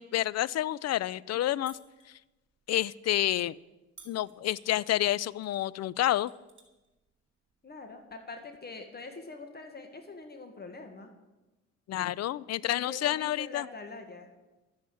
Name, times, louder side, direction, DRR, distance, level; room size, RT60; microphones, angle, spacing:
voice 1, 0.0-1.8 2.1-2.2 2.7-3.6 4.1-6.3 11.9-13.7, left 13 dB, 60° left, 21 dB, 0.5 m, -29 dB
sound 1, 1.7-2.1 4.0-4.7 5.4-5.6 6.0-6.9 8.1-8.2, right 5 dB, 40° right, 2.9 m, -53 dB
voice 2, 7.6-11.1 12.6-14.3, left 3 dB, 35° left, 6 dB, 1.8 m, -44 dB
12.0 x 9.5 x 7.7 m, 1.1 s
cardioid pair, 90°, 30 cm